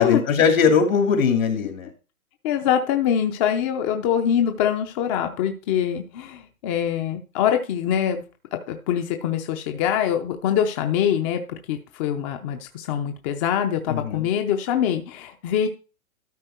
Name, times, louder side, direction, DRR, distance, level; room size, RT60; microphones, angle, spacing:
voice 1, 0.0-1.9 13.9-14.2, left 6 dB, 70° left, 5 dB, 2.6 m, -20 dB
voice 2, 2.4-8.2 8.5-11.4 11.7-15.7, left 9 dB, 25° left, 5 dB, 0.6 m, -24 dB
13.0 x 4.6 x 4.4 m, 0.34 s
hypercardioid pair, 145°, 42 cm